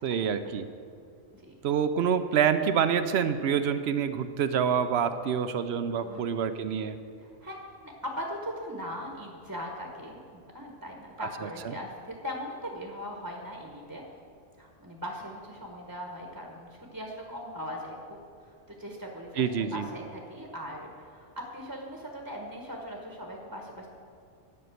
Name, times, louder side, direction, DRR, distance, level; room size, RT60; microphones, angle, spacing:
voice 1, 0.0-0.7 1.6-7.0 19.4-19.9, right 7 dB, 70° right, 10 dB, 0.8 m, -27 dB
voice 2, 7.2-14.0 14.6-23.9, equal, 15° right, 0 dB, 1.0 m, -40 dB
11.0 x 5.4 x 7.7 m, 2.3 s
omnidirectional pair, 1.2 m